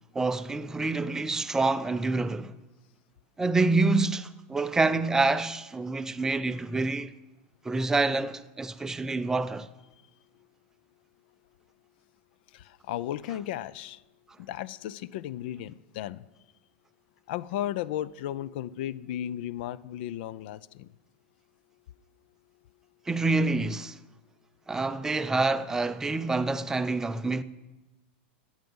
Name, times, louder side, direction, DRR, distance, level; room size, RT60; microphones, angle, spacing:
voice 1, 0.1-2.6 3.4-7.1 7.6-9.7 23.1-24.0 24.7-27.4, right 3 dB, 10° right, 0.4 m, -27 dB
voice 2, 12.5-14.0 14.4-16.3 17.3-20.9, left 12 dB, 65° left, 0.5 m, -35 dB
14.0 x 8.9 x 5.4 m
supercardioid pair, 140°, 6 cm